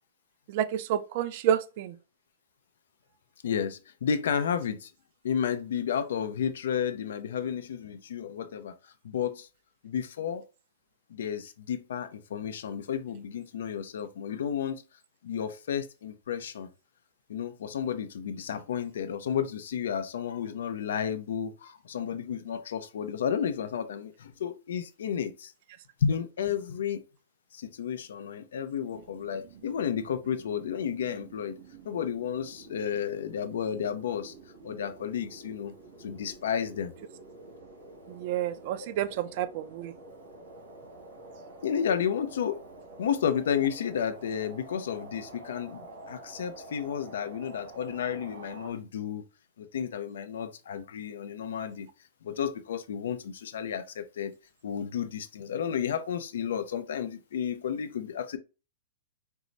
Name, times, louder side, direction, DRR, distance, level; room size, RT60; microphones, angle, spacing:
voice 1, 0.5-2.0 38.1-39.9, right 10 dB, 40° right, 0.4 m, -29 dB
voice 2, 3.4-4.9 5.2-8.7 9.0-9.5 9.8-10.4 11.1-14.8 15.2-16.7 17.3-25.5 26.0-27.0 27.5-31.6 31.8-34.3 34.6-35.7 36.0-36.9 41.6-42.6 43.0-45.8 46.1-49.2 49.6-51.9 52.2-54.3 54.6-58.4, left 8 dB, 75° left, 0.6 m, -32 dB
sound 1, 28.9-48.7, right 2 dB, 90° right, 1.6 m, -49 dB
4.5 x 2.1 x 3.9 m
hypercardioid pair, 165°, 0 cm